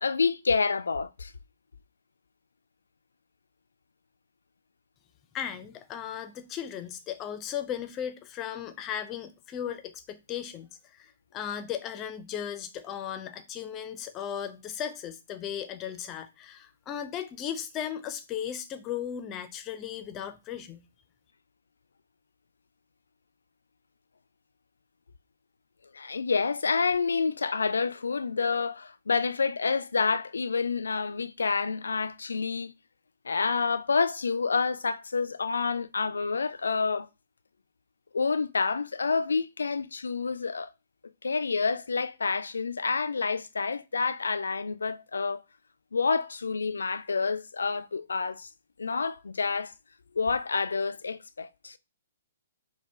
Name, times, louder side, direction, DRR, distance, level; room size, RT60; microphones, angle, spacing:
voice 1, 0.0-1.3 25.9-32.7 33.3-37.1 38.1-40.7 41.2-45.4 45.9-48.5 48.8-49.7 50.2-51.8, left 4 dB, 75° left, 0.3 m, -28 dB
voice 2, 5.3-20.9, left 9 dB, 25° left, 0.5 m, -36 dB
4.8 x 2.2 x 3.4 m
figure-of-eight pair, 120°, 0 cm